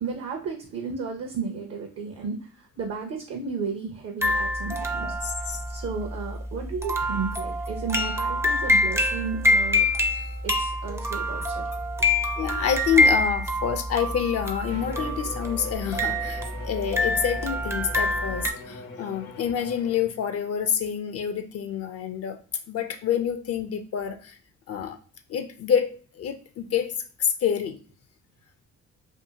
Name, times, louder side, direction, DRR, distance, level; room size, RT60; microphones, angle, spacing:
voice 1, 0.0-5.1 5.7-9.9 10.4-11.7 12.0-12.1, right 5 dB, 55° right, 3 dB, 0.6 m, -33 dB
sound 1, 4.2-18.5, left 1 dB, 10° right, 0.4 m, -26 dB
voice 2, 5.0-5.6 10.1-10.3 12.0-22.4 22.7-24.4 24.7-25.0 25.3-26.9 27.2-27.8, left 8 dB, 55° left, 7 dB, 0.4 m, -28 dB
Bowed string instrument, 14.6-20.3, left 3 dB, 85° left, 0.8 m, -41 dB
2.6 x 2.5 x 2.7 m, 0.40 s
cardioid pair, 90°, 30 cm